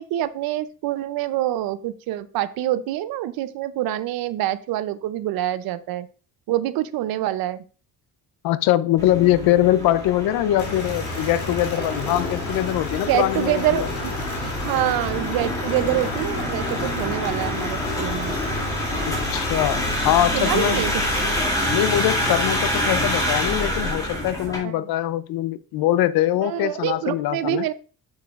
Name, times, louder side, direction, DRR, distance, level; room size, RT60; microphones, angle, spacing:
voice 1, 0.0-6.1 6.5-7.6 13.1-13.9 14.4-18.4 20.3-21.0 24.6-24.9 26.4-27.7, right 13 dB, 75° right, 0.7 m, -26 dB
voice 2, 8.4-13.9 19.3-20.8 21.7-27.7, left 13 dB, 80° left, 0.6 m, -22 dB
sound 1, 9.0-24.6, left 1 dB, 10° left, 2.7 m, -27 dB
sound 2, 10.6-21.4, left 2 dB, 40° left, 2.5 m, -33 dB
7.9 x 7.3 x 2.5 m
cardioid pair, 140°, 36 cm